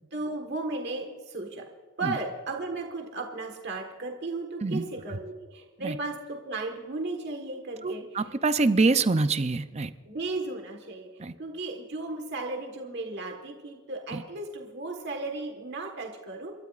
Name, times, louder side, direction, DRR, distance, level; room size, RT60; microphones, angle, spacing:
voice 1, 0.1-1.6 2.0-8.2 10.1-11.1 11.4-16.5, right 2 dB, 55° right, 2 dB, 1.5 m, -35 dB
voice 2, 4.6-5.2 5.8-6.0 7.8-9.9 11.2-11.3 14.1-14.2, right 3 dB, 30° right, 12 dB, 0.5 m, -26 dB
29.0 x 13.0 x 2.5 m, 1.5 s
head